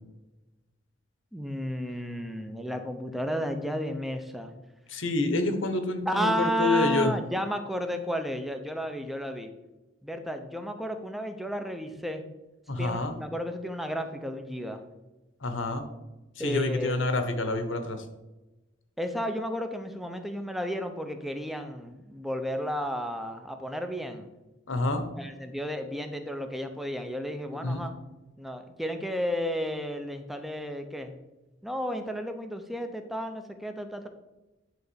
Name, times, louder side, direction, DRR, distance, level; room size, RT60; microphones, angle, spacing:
voice 1, 1.3-4.5 6.1-9.5 10.0-12.2 12.8-14.8 16.4-17.1 19.0-24.3 25.2-28.0 28.4-31.2 31.6-34.1, equal, ahead, 6 dB, 0.7 m, -32 dB
voice 2, 4.9-6.3 6.6-7.1 12.7-13.2 15.4-15.8 16.4-18.0 24.7-25.0 27.5-27.8, left 2 dB, 80° left, 8 dB, 1.2 m, -28 dB
10.0 x 3.9 x 7.0 m, 1.0 s
head